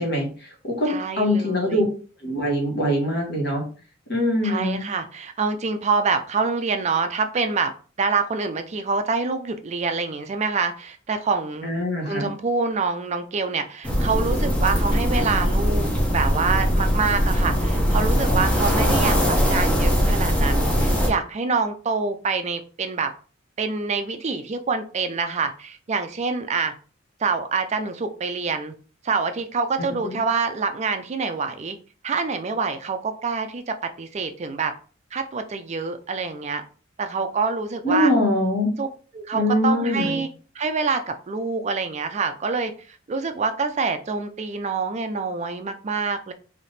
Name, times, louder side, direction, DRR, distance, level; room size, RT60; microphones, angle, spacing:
voice 1, 0.0-1.8 2.2-3.6 4.1-4.8 11.6-12.3 30.0-30.1 37.8-38.7 39.3-40.2, left 1 dB, 60° left, 0 dB, 1.5 m, -23 dB
voice 2, 0.9-1.8 4.4-7.7 8.0-11.7 12.1-23.1 23.6-26.7 27.2-28.7 29.0-31.8 32.0-34.7 35.1-36.6 37.0-38.1 38.8-38.9 39.1-40.3 40.5-46.3, right 4 dB, 35° right, 8 dB, 0.4 m, -26 dB
sound 1, 13.8-21.1, equal, 5° left, 0.8 m, -21 dB
3.4 x 2.8 x 4.0 m, 0.39 s
head